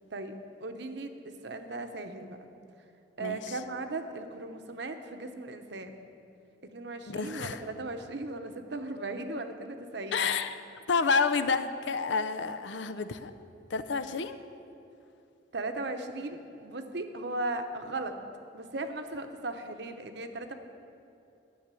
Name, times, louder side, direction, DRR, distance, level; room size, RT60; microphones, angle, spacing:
voice 1, 0.1-2.5 3.2-5.9 6.6-10.3 15.5-18.2 18.5-20.5, right 2 dB, 65° right, 7 dB, 0.9 m, -37 dB
voice 2, 3.2-3.5 7.1-7.6 10.1-10.6 10.9-13.3 13.7-14.4, left 5 dB, 80° left, 11 dB, 0.6 m, -29 dB
11.5 x 6.5 x 9.1 m, 2.7 s
head